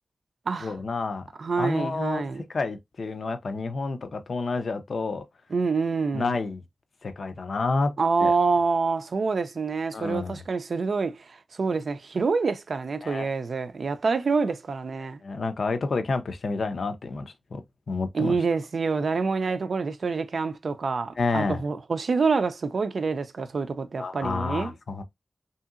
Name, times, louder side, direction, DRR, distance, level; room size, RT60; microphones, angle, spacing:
voice 1, 0.6-1.3 1.6-2.2 2.5-5.2 6.1-6.6 7.0-7.9 8.2-8.3 9.9-10.4 13.0-13.3 15.2-17.6 17.9-18.4 21.2-21.6 24.0-25.0, left 3 dB, 75° left, 0.5 m, -29 dB
voice 2, 1.4-2.4 5.5-6.3 8.0-15.2 18.1-24.7, right 4 dB, 75° right, 0.4 m, -26 dB
2.7 x 2.7 x 2.4 m
cardioid pair, 45°, 0 cm